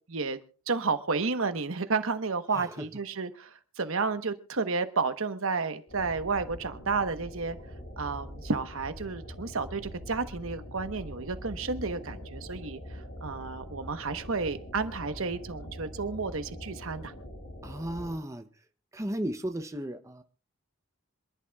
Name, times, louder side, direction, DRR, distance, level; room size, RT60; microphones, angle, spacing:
voice 1, 0.1-0.4 0.7-7.6 8.0-17.1, right 4 dB, 75° right, 1.1 m, -31 dB
voice 2, 2.5-2.9 17.6-18.5 18.9-20.2, right 1 dB, 15° right, 0.7 m, -35 dB
sound 1, 5.9-18.2, equal, 70° left, 5.9 m, -43 dB
26.5 x 11.5 x 2.3 m
head